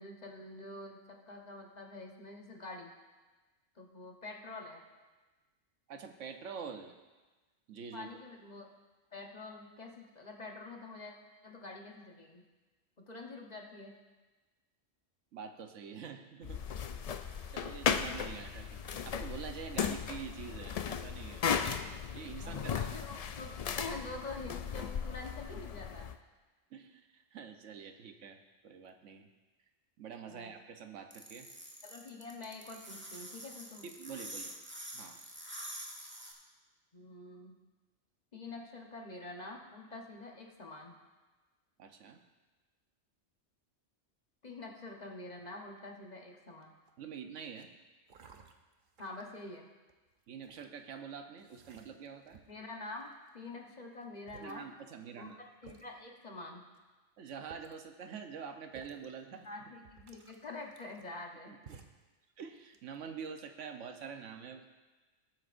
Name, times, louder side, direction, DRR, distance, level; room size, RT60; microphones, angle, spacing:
voice 1, 0.0-2.9 3.7-4.8 7.9-8.7 9.1-11.1 11.4-12.4 13.1-14.0 22.4-26.1 30.3-30.5 31.8-33.8 36.9-37.6 38.3-40.9 44.4-46.7 49.0-49.7 52.5-54.7 55.2-55.3 55.6-56.7 59.4-61.6, left 2 dB, 35° left, 0 dB, 1.2 m, -46 dB
voice 2, 5.9-6.9 7.7-8.1 15.3-16.7 17.1-18.8 19.0-21.5 22.1-22.9 26.7-29.3 30.0-31.5 33.8-34.5 34.9-35.2 41.8-42.2 47.0-47.7 50.3-52.4 54.4-55.4 57.2-59.5 61.5-61.8 62.4-64.6, right 6 dB, 90° right, 6 dB, 1.2 m, -46 dB
sound 1, 16.4-26.1, left 7 dB, 80° left, 0.3 m, -36 dB
sound 2, 31.1-36.3, right 1 dB, 10° right, 1.3 m, -46 dB
sound 3, 46.6-47.0 47.5-47.7 48.1-49.4 49.9-50.7 51.4-52.6 53.0-53.5 54.0-54.1 54.3-54.6 55.2-55.3 55.6-55.9 56.7-56.8 57.3-57.9 58.7-59.1 59.4-59.5 59.8-61.3 61.7-62.1 62.5-63.1, right 5 dB, 50° right, 0.8 m, -57 dB
18.5 x 8.7 x 2.6 m, 1.2 s
omnidirectional pair, 1.2 m